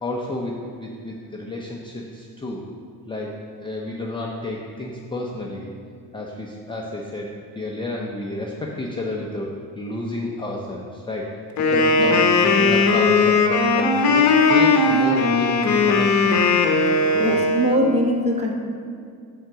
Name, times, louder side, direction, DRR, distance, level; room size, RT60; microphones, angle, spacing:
voice 1, 0.0-2.6 3.1-5.7 6.1-9.5 9.7-11.3 11.7-16.6 17.1-17.4, left 2 dB, 15° left, -2 dB, 0.5 m, -30 dB
Wind instrument woodwind instrument, 11.6-17.8, left 3 dB, 45° left, 0.9 m, -18 dB
voice 2, 17.2-18.5, equal, 15° right, -1 dB, 1.0 m, -22 dB
9.2 x 3.9 x 6.7 m, 2.2 s
cardioid pair, 155°, 39 cm